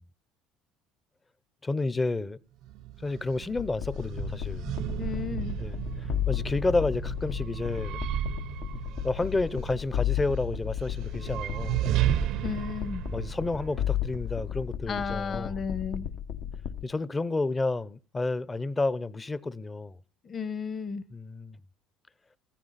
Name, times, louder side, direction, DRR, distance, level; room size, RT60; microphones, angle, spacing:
voice 1, 1.6-2.4 3.0-4.6 5.6-8.0 9.0-11.8 13.1-15.6 16.8-20.0 21.1-21.6, left 3 dB, 15° left, 0.7 m, -30 dB
sound 1, 2.6-14.8, right 13 dB, 65° right, 0.6 m, -34 dB
sound 2, 3.5-16.8, left 10 dB, 75° left, 1.2 m, -34 dB
voice 2, 5.0-5.6 12.4-13.0 14.9-16.1 20.2-21.0, left 5 dB, 35° left, 1.1 m, -33 dB
16.0 x 14.5 x 4.1 m
cardioid pair, 125°, 0 cm